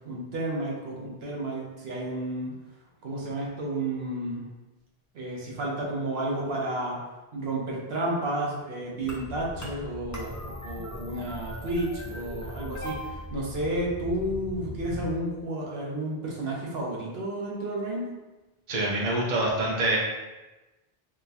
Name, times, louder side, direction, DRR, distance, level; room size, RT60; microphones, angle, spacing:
voice 1, 0.0-2.5 3.0-4.5 5.1-7.0 7.3-18.1, right 1 dB, 75° right, -3 dB, 1.1 m, -31 dB
sound 1, 9.0-15.1, left 1 dB, 30° left, 0.3 m, -39 dB
voice 2, 18.7-20.0, right 2 dB, 50° right, -3 dB, 0.8 m, -25 dB
4.3 x 2.1 x 2.8 m, 1.1 s
omnidirectional pair, 1.0 m